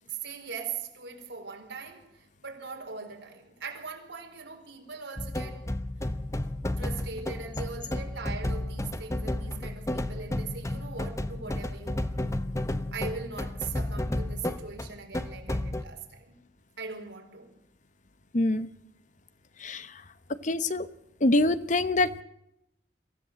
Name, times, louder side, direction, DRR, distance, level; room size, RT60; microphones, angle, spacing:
voice 1, 0.0-5.7 6.8-12.4 12.9-16.4 16.8-17.5, right 5 dB, 80° right, 4.5 m, -40 dB
sound 1, 5.2-15.8, left 1 dB, 15° left, 1.0 m, -32 dB
voice 2, 18.3-18.7 19.6-19.9 20.3-20.9 21.2-22.2, left 2 dB, 40° left, 0.9 m, -25 dB
23.5 x 15.0 x 7.6 m
head